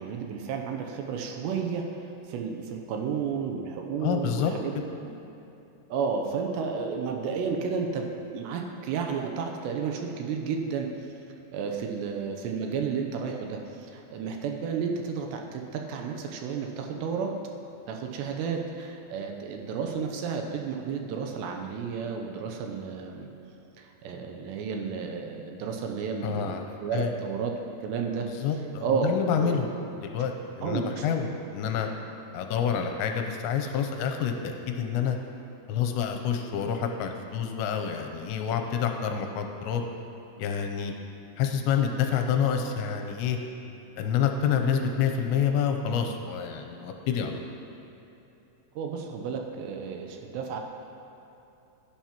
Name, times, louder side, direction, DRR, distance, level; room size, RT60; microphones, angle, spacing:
voice 1, 0.0-1.8 2.3-4.7 5.9-8.1 8.3-10.9 11.5-17.3 17.9-23.3 23.8-27.5 27.8-28.3 28.8-29.7 30.6-31.0 48.8-50.6, right 6 dB, 80° right, 2 dB, 2.8 m, -32 dB
voice 2, 4.0-4.5 26.2-27.1 28.4-29.7 29.9-31.9 32.3-35.2 35.7-39.8 40.4-40.9 41.4-43.4 44.0-47.4, left 7 dB, 85° left, 4 dB, 2.9 m, -28 dB
16.0 x 10.5 x 3.0 m, 2.9 s
omnidirectional pair, 5.2 m